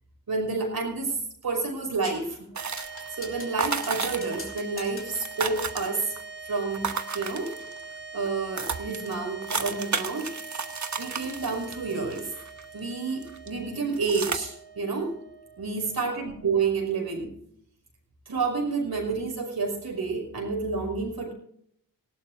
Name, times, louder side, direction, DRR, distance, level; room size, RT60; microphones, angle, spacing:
voice 1, 0.3-2.5 3.1-6.1 6.4-7.5 8.1-10.3 11.0-12.3 12.7-15.1 15.6-17.3 18.3-21.3, right 4 dB, 80° right, 2 dB, 5.5 m, -29 dB
sound 1, 2.0-2.3 2.8-5.4, left 2 dB, 35° left, 3.2 m, -44 dB
sound 2, 2.5-16.9, right 4 dB, 30° right, 1.6 m, -43 dB
sound 3, 2.6-3.2 3.6-4.5 4.8-4.9 5.1-6.2 6.7-7.8 8.3-8.4 8.6-12.9 13.2-13.5 14.0-14.4, right 5 dB, 50° right, 1.2 m, -32 dB
19.0 x 17.5 x 2.6 m, 0.70 s
wide cardioid pair, 105°, 37 cm